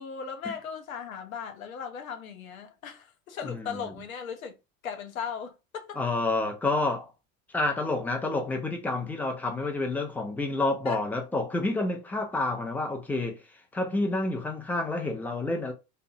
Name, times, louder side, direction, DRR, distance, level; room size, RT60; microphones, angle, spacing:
voice 1, 0.0-4.5 4.8-6.0 10.9-11.0, left 7 dB, 85° left, 0.6 m, -37 dB
voice 2, 3.4-3.9 6.0-7.1 7.5-13.4 13.7-15.7, left 2 dB, 5° left, 0.6 m, -29 dB
2.7 x 2.1 x 2.7 m
figure-of-eight pair, 70°, 41 cm